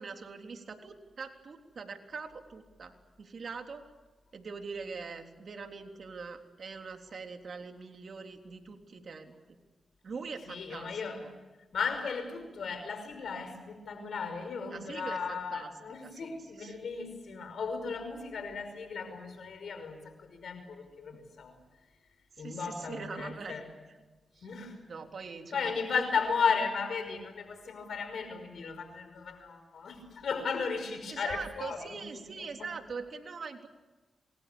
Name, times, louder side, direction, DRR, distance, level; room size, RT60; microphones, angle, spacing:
voice 1, 0.0-2.9 3.2-3.8 4.3-9.3 10.0-10.9 11.2-11.3 14.7-15.7 16.0-16.3 16.6-16.8 22.4-23.6 24.4-24.5 24.9-25.7 31.1-33.7, right 5 dB, 65° right, 4 dB, 3.6 m, -42 dB
voice 2, 10.5-11.2 11.7-21.5 22.4-23.7 24.4-24.8 25.5-32.0 32.4-32.5, left 5 dB, 75° left, 8 dB, 5.5 m, -35 dB
27.5 x 24.0 x 7.0 m, 1.2 s
cardioid pair, 60°, 0 cm